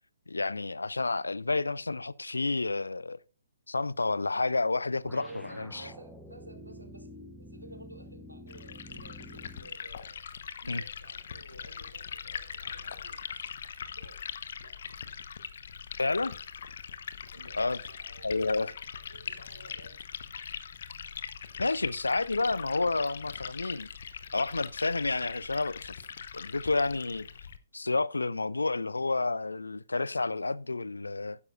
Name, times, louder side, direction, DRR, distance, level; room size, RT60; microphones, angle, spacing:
voice 1, 0.3-3.2 3.7-5.3 5.6-5.8 10.7-10.8 16.0-16.3 17.6-17.8 18.2-18.7 21.6-23.9 24.3-26.0 26.3-27.3 27.7-31.4, left 3 dB, 70° left, 0.5 m, -30 dB
sound 1, 5.0-9.8, equal, ahead, 1.1 m, -48 dB
voice 2, 5.1-7.1 7.4-10.2 10.6-13.4 13.9-14.2 14.6-14.8 17.3-20.0, right 1 dB, 85° right, 2.7 m, -52 dB
Liquid, 8.5-27.6, left 7 dB, 50° left, 1.0 m, -41 dB
12.0 x 9.8 x 2.5 m
figure-of-eight pair, 130°, 0 cm